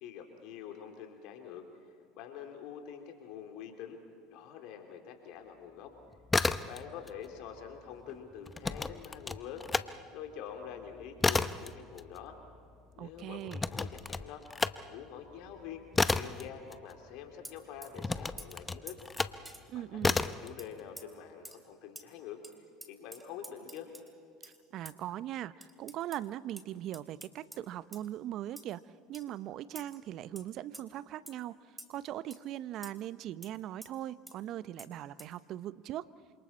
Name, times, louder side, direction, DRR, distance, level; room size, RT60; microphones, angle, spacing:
voice 1, 0.0-1.6 2.1-4.0 4.3-5.9 6.7-9.7 10.1-12.4 12.9-14.4 14.8-15.8 16.1-19.0 19.7-22.4 22.9-23.9, left 8 dB, 60° left, 4 dB, 2.9 m, -46 dB
sound 1, 6.1-7.1 7.4-9.9 10.3-17.3 18.0-19.4 20.0-20.5, left 3 dB, 20° left, 0.8 m, -32 dB
voice 2, 13.0-13.6 19.7-20.2 24.4-28.8 29.1-36.1, right 12 dB, 55° right, 17 dB, 0.7 m, -40 dB
sound 2, 17.4-17.9 18.4-18.5 18.9-19.6 20.6-20.7 21.0-21.1 21.4-21.6 22.0-22.1 22.4-22.5 22.8-24.1 24.4-24.6 24.9-25.0 25.6-26.3 26.6-26.7 26.9-27.6 27.9-28.1 28.6-28.7 29.1-29.2 29.8-30.0 30.4-30.5 30.7-30.8 31.3-31.4 31.8-31.9 32.3-32.4 32.8-32.9 33.4-33.5 33.8-33.9 34.3-34.4 34.8-34.9 35.2-35.3, right 1 dB, 10° right, 3.0 m, -48 dB
28.0 x 26.5 x 4.3 m, 2.2 s
hypercardioid pair, 75°, 0 cm